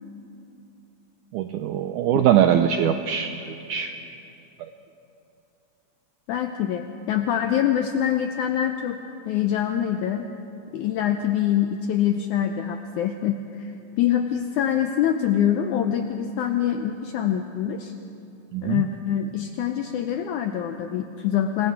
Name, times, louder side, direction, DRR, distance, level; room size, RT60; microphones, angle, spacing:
voice 1, 1.3-3.9 18.5-18.8, right 9 dB, 90° right, 7 dB, 1.8 m, -22 dB
voice 2, 6.3-9.0 9.3-10.3 10.7-13.7 14.0-17.9 18.6-21.7, left 10 dB, 90° left, 6 dB, 1.7 m, -25 dB
26.5 x 21.5 x 4.8 m, 2.7 s
omnidirectional pair, 4.3 m